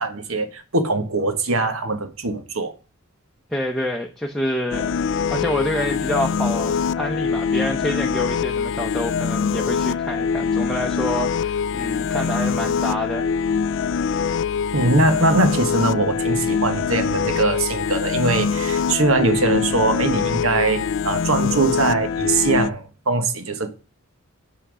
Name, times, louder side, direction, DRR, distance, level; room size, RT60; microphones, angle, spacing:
voice 1, 0.0-2.7 14.7-23.7, right 3 dB, 75° right, 1.4 m, -21 dB
voice 2, 3.5-5.0 5.3-13.3, equal, ahead, 0.8 m, -27 dB
sound 1, 4.7-22.7, left 6 dB, 60° left, 0.4 m, -23 dB
6.9 x 5.8 x 6.2 m
head